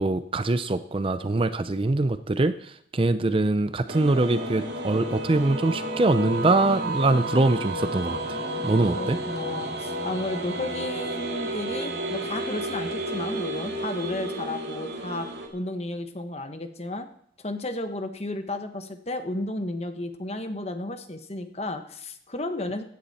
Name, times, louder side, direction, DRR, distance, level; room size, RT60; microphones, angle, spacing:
voice 1, 0.0-9.2, right 2 dB, 30° right, 12 dB, 0.5 m, -23 dB
sound 1, 3.9-15.5, right 1 dB, 55° right, 2.3 m, -32 dB
voice 2, 8.9-15.3 15.5-17.1 17.4-22.8, left 2 dB, 35° left, 8 dB, 1.2 m, -33 dB
16.0 x 10.0 x 4.2 m, 0.68 s
head